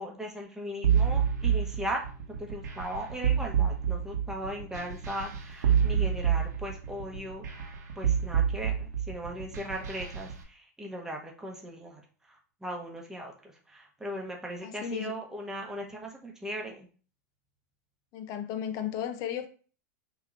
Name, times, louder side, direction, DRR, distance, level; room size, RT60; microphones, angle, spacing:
voice 1, 0.0-2.0 2.4-16.9, equal, 5° right, 1.0 m, -38 dB
sound 1, 0.8-10.4, right 8 dB, 85° right, 1.0 m, -28 dB
voice 2, 14.6-15.2 18.1-19.5, left 9 dB, 40° left, 0.6 m, -34 dB
5.6 x 3.0 x 2.5 m
supercardioid pair, 135°, 9 cm